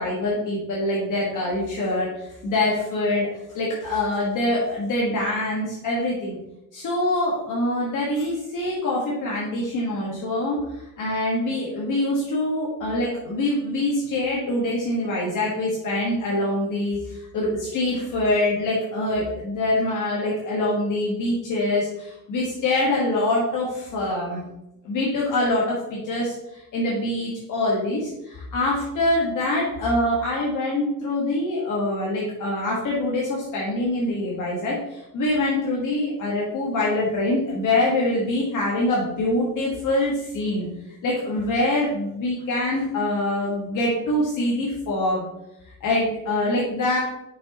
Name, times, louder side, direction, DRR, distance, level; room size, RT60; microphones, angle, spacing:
voice 1, 0.0-3.3 3.5-6.4 6.7-24.4 24.8-40.7 41.0-45.2 45.8-47.0, left 1 dB, 50° left, -4 dB, 1.6 m, -24 dB
6.3 x 6.1 x 3.0 m, 0.89 s
cardioid pair, 135°, 41 cm